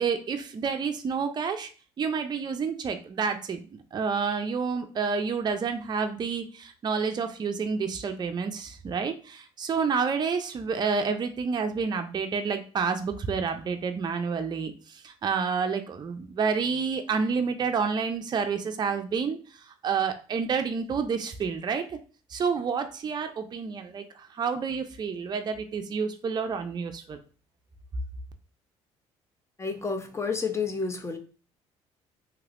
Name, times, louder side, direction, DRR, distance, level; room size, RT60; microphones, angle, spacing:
voice 1, 0.0-1.7 2.0-3.6 3.9-14.7 15.0-19.4 19.8-21.8 22.3-27.2, right 5 dB, 35° right, 6 dB, 0.5 m, -29 dB
voice 2, 29.6-31.2, left 5 dB, 20° left, 6 dB, 0.7 m, -30 dB
3.1 x 2.9 x 2.5 m, 0.38 s
supercardioid pair, 75°, 13 cm